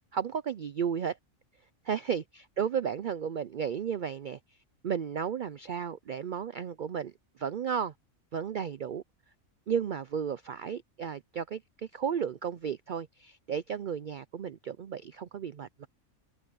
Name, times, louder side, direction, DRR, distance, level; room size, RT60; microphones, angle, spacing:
voice 1, 0.1-1.2 1.8-4.4 4.8-7.9 8.3-9.0 9.7-11.6 11.9-15.9, right 7 dB, 75° right, 0.4 m, -33 dB
omnidirectional pair, 1.5 m